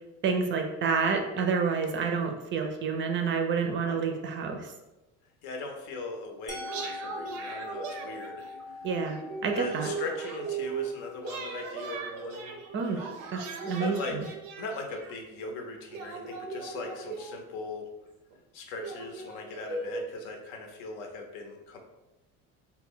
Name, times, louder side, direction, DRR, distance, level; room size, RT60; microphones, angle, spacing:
voice 1, 0.2-4.6 8.8-9.9 12.7-13.0 13.3-14.2, right 5 dB, 35° right, 4 dB, 0.4 m, -29 dB
voice 2, 5.4-8.8 9.5-13.1 13.8-17.9 18.5-21.8, left 3 dB, 75° left, 3 dB, 0.7 m, -39 dB
Musical instrument, 6.5-12.4, left 2 dB, 5° left, 0.6 m, -43 dB
sound 1, 6.6-8.6 9.0-10.9 11.2-15.1 15.9-17.6 18.3-18.4 18.8-20.0, right 5 dB, 90° right, 0.5 m, -38 dB
2.2 x 2.1 x 3.6 m, 0.99 s
supercardioid pair, 95°, 37 cm